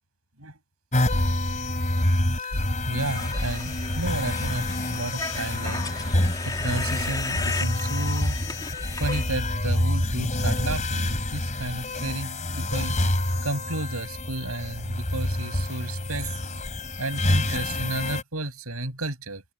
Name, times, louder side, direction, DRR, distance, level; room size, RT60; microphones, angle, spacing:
sound 1, 0.9-18.2, left 1 dB, 35° left, 3.6 m, -27 dB
voice 1, 2.4-8.4 9.0-16.3 17.0-19.4, right 2 dB, 75° right, 7.2 m, -32 dB
sound 2, 3.0-9.2, left 3 dB, 20° left, 3.4 m, -35 dB
head